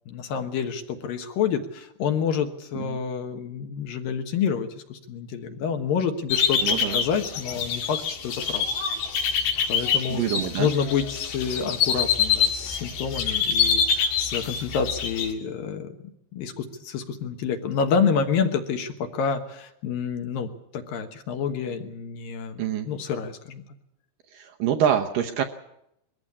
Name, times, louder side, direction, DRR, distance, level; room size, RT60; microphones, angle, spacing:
voice 1, 0.1-8.6 9.7-10.2 10.6-15.9 16.3-23.6, left 6 dB, 65° left, 6 dB, 2.7 m, -28 dB
sound 1, 6.3-15.3, left 7 dB, 85° left, 4.2 m, -25 dB
voice 2, 6.6-7.0 10.1-10.7 22.6-22.9 24.3-25.4, right 9 dB, 70° right, 4 dB, 2.2 m, -26 dB
22.0 x 15.0 x 8.6 m, 0.81 s
omnidirectional pair, 4.7 m